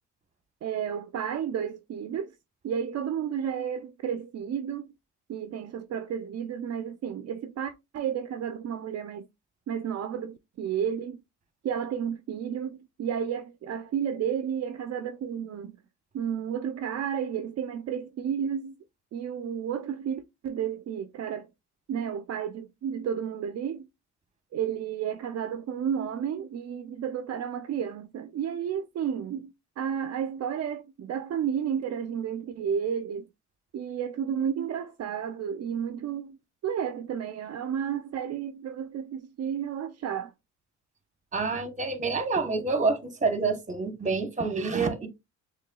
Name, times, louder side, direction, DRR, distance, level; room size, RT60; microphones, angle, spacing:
voice 1, 0.6-2.4 2.6-4.9 5.3-9.3 9.7-11.2 11.6-15.7 16.1-18.7 19.1-21.5 21.9-23.9 24.5-33.3 33.7-36.4 36.6-40.3, right 8 dB, 55° right, 0.5 m, -32 dB
voice 2, 41.3-45.1, right 4 dB, 25° right, 1.1 m, -27 dB
6.6 x 3.2 x 2.3 m
cardioid pair, 90°, 30 cm